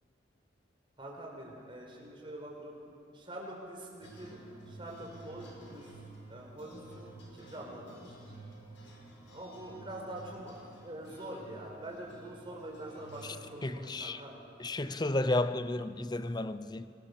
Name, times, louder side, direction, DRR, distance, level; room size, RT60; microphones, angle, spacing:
voice 1, 1.0-4.4 4.7-5.9 6.3-8.3 9.3-14.3, right 1 dB, 25° right, 4.8 m, -45 dB
sound 1, 4.0-13.7, right 2 dB, 80° left, 6.0 m, -52 dB
voice 2, 13.6-14.2 14.6-16.9, left 2 dB, 20° left, 0.7 m, -32 dB
24.5 x 21.0 x 7.0 m
head